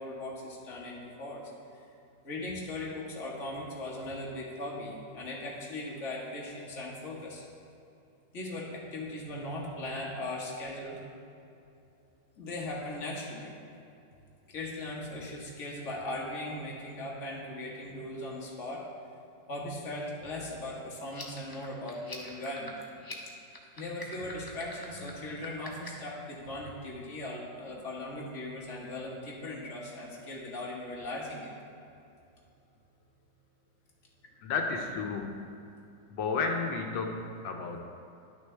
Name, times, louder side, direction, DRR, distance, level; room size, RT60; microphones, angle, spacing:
voice 1, 0.0-1.8 2.2-7.4 8.3-11.0 12.4-13.5 14.5-18.8 19.5-22.7 23.8-31.5, left 1 dB, 45° left, -4 dB, 1.7 m, -39 dB
sound 1, 21.1-26.1, left 2 dB, 25° left, 0.4 m, -45 dB
voice 2, 34.4-35.5 36.1-37.8, left 4 dB, 90° left, 2 dB, 1.5 m, -32 dB
11.0 x 6.3 x 3.3 m, 2.7 s
omnidirectional pair, 2.0 m